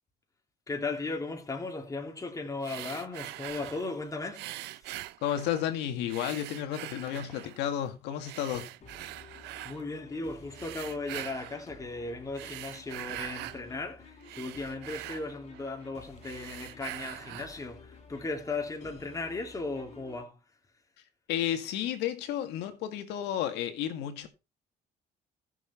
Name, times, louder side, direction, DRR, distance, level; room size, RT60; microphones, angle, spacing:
voice 1, 0.7-4.9 9.6-20.4, left 3 dB, 20° left, 2.9 m, -37 dB
sound 1, 2.6-3.9 4.3-5.7 6.1-7.6 8.2-9.8 10.5-11.7 12.2-13.6 14.0-15.9 16.2-17.6, right 17 dB, 90° right, 0.6 m, -43 dB
voice 2, 5.2-8.7 21.3-24.3, left 11 dB, 90° left, 2.0 m, -32 dB
sound 2, 8.8-20.2, left 5 dB, 40° left, 3.9 m, -53 dB
14.5 x 7.4 x 4.3 m
cardioid pair, 110°, 17 cm